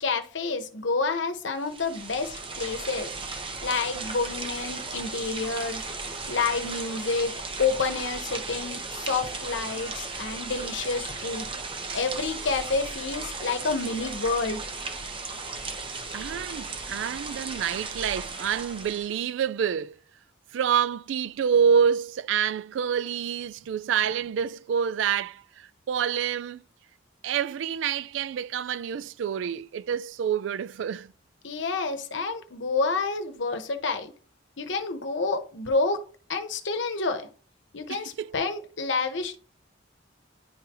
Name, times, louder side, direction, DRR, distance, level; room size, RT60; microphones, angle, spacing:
voice 1, 0.0-3.1 3.6-5.8 6.3-7.3 7.6-11.5 11.9-14.6 31.4-34.1 34.6-36.0 36.3-37.3 37.7-39.4, left 4 dB, 70° left, 0.9 m, -29 dB
sound 1, 1.6-19.2, right 3 dB, 25° right, 0.9 m, -36 dB
voice 2, 16.1-20.0 20.5-26.6 27.2-31.1 37.9-38.3, right 7 dB, 70° right, 0.3 m, -27 dB
10.5 x 3.8 x 3.0 m
head